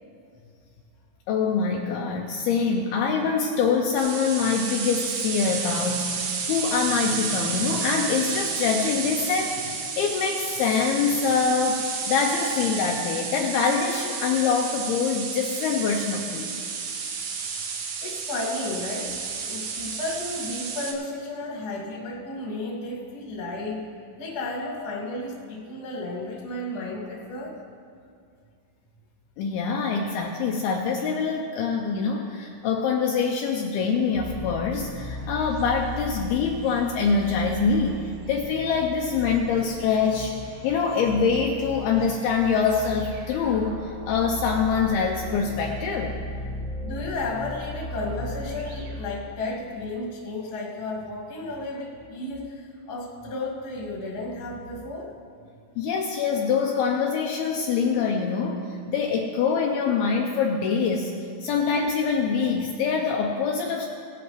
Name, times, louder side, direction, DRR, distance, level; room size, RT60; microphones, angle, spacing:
voice 1, 1.3-11.8 12.1-16.5 29.4-40.3 40.6-46.2 55.8-61.1 61.4-63.9, left 5 dB, 80° left, 1 dB, 2.3 m, -24 dB
sound 1, 4.0-20.9, right 5 dB, 75° right, 3.1 m, -31 dB
voice 2, 18.0-19.2 19.5-23.8 24.2-27.5 46.8-55.1, left 2 dB, 40° left, -3 dB, 1.4 m, -33 dB
sound 2, 34.1-49.7, left 1 dB, 55° right, 3.3 m, -37 dB
18.0 x 11.0 x 3.2 m, 2.4 s
omnidirectional pair, 5.0 m